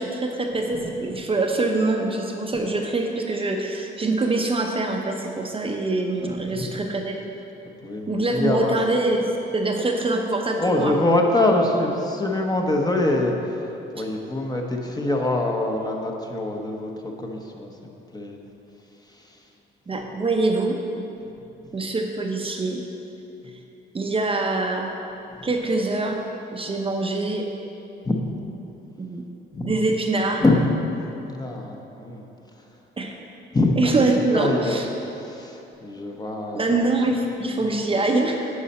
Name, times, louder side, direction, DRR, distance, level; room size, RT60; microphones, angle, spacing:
voice 1, 0.0-7.2 8.1-9.3 9.5-11.0 19.9-20.8 21.7-22.8 23.9-24.9 25.4-26.2 26.5-27.5 29.0-29.2 29.6-30.4 33.0-33.1 33.8-34.9 36.5-38.5, right 2 dB, 25° right, 2 dB, 0.7 m, -24 dB
voice 2, 7.8-8.8 10.6-13.6 13.9-16.9 17.2-18.4 25.4-25.5 28.0-28.2 29.5-29.7 30.4-30.6 30.9-32.3 33.5-33.9 34.3-36.8, left 2 dB, 20° left, 1 dB, 0.9 m, -24 dB
9.6 x 5.5 x 4.2 m, 2.9 s
cardioid pair, 90°, 20 cm